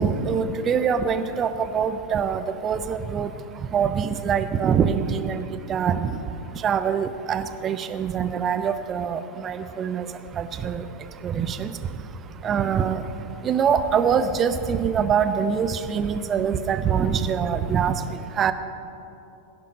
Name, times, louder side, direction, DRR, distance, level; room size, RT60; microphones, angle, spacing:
voice 1, 0.0-3.3 3.7-5.4 5.7-6.1 6.6-10.0 10.4-10.8 11.2-11.7 12.4-13.0 13.4-17.9 18.4-18.5, right 7 dB, 25° right, 11 dB, 0.7 m, -24 dB
16.5 x 10.5 x 5.0 m, 2.9 s
figure-of-eight pair, 90°, 0 cm